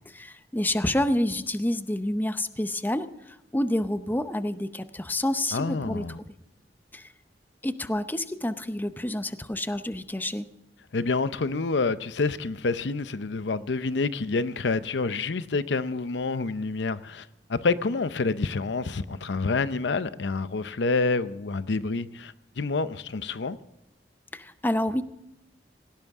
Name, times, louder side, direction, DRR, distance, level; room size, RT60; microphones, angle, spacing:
voice 1, 0.1-6.3 6.9-7.1 7.6-10.5 24.3-25.0, left 1 dB, 10° left, 0.7 m, -28 dB
voice 2, 5.5-6.2 10.9-23.6, left 3 dB, 85° left, 0.6 m, -28 dB
18.0 x 17.5 x 3.6 m
head